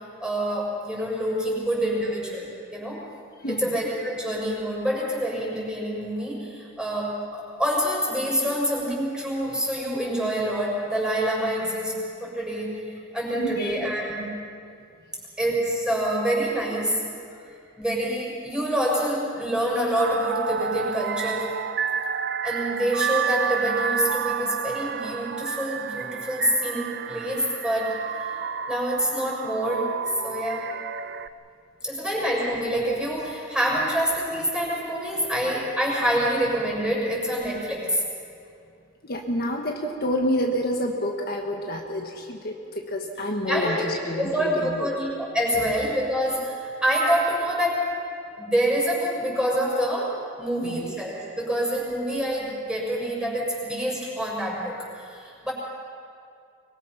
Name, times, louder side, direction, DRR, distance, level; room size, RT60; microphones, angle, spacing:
voice 1, 0.2-3.0 3.5-14.3 15.4-17.0 17.8-21.6 22.4-28.3 28.7-29.9 30.2-30.7 31.8-38.0 43.5-43.9 44.2-47.9 48.4-55.5, equal, 5° right, -4 dB, 6.2 m, -26 dB
voice 2, 3.4-3.8 13.4-13.8 39.0-44.9 45.5-45.6 50.6-51.0, left 1 dB, 50° left, 1 dB, 1.6 m, -29 dB
sound 1, 20.0-31.3, right 7 dB, 55° right, 0.5 m, -30 dB
24.0 x 22.0 x 6.0 m, 2.4 s
head